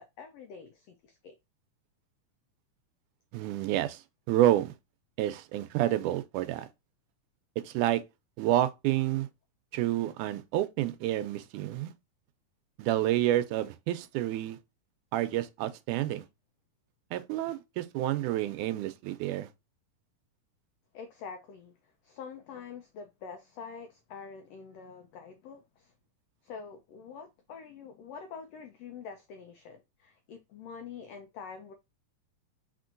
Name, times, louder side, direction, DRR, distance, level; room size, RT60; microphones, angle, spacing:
voice 1, 0.0-1.3 20.9-21.7 22.0-25.9 26.4-31.7, left 6 dB, 90° left, 1.4 m, -46 dB
voice 2, 3.3-4.0 4.3-4.7 5.2-6.7 7.6-8.0 8.4-9.3 9.7-11.9 12.8-14.6 15.1-16.3 17.1-19.5, right 13 dB, 80° right, 2.0 m, -29 dB
4.4 x 4.4 x 2.5 m
omnidirectional pair, 3.7 m